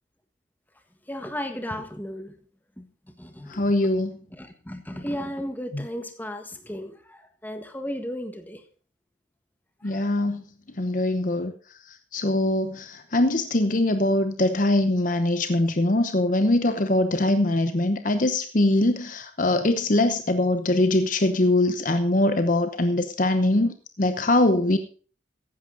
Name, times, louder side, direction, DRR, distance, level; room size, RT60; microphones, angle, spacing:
voice 1, 1.1-2.3 2.8-2.9 3.2-3.6 4.4-8.6 9.9-10.1, equal, 10° left, 6 dB, 1.6 m, -34 dB
voice 2, 3.5-4.1 5.7-5.8 9.8-10.4 10.8-11.5 12.1-24.8, left 1 dB, 45° left, 9 dB, 0.9 m, -22 dB
15.0 x 10.5 x 3.9 m, 0.39 s
head